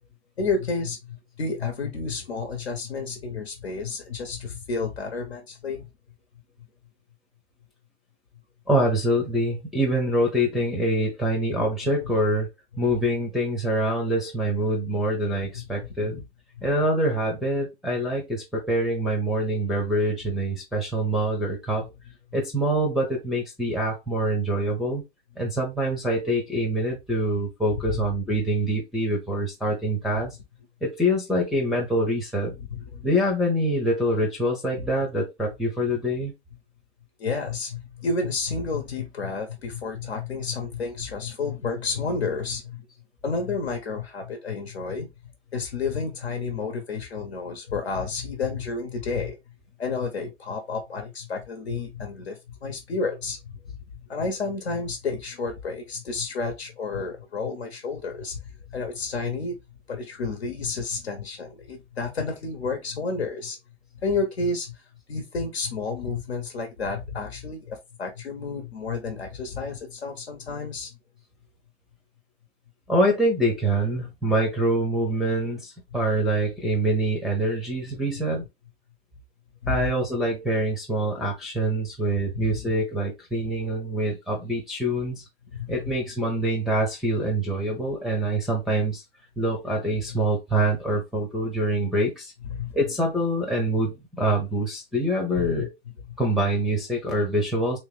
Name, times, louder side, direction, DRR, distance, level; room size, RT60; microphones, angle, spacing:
voice 1, 0.4-5.8 15.5-15.6 16.0-16.1 27.9-28.0 30.2-30.3 32.7-33.1 37.2-42.9 43.2-45.1 45.5-49.4 49.8-53.4 54.1-58.4 58.7-59.6 59.9-63.6 64.0-64.8 65.1-70.9 79.6-79.9 82.4-82.6 85.5-85.9 92.5-92.7 95.4-95.7, left 4 dB, 65° left, 1.1 m, -30 dB
voice 2, 8.7-12.5 12.8-16.2 16.6-21.9 22.3-25.0 25.4-30.4 30.8-32.5 33.0-36.3 72.9-78.4 79.7-85.2 85.7-89.0 89.4-92.3 92.7-95.7 96.2-97.8, right 1 dB, ahead, 0.6 m, -25 dB
3.3 x 3.1 x 3.3 m
figure-of-eight pair, 110°, 34 cm